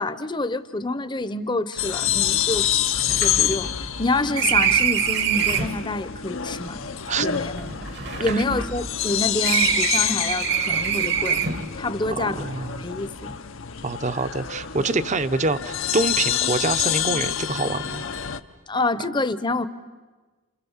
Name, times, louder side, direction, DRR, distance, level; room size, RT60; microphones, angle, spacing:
voice 1, 0.0-2.7 3.2-6.8 7.2-7.8 8.2-11.4 11.8-12.5 12.8-13.4 18.7-19.7, left 2 dB, 20° left, 13 dB, 0.8 m, -27 dB
sound 1, 1.7-1.8 2.1-2.2 2.5-5.8 6.7-9.1 9.4-11.7, right 8 dB, 55° right, 1.4 m, -25 dB
sound 2, 1.8-18.4, left 10 dB, 75° left, 0.9 m, -27 dB
voice 2, 12.1-12.8 13.8-18.0, right 3 dB, 35° right, 12 dB, 0.8 m, -26 dB
29.5 x 28.0 x 7.3 m, 1.3 s
head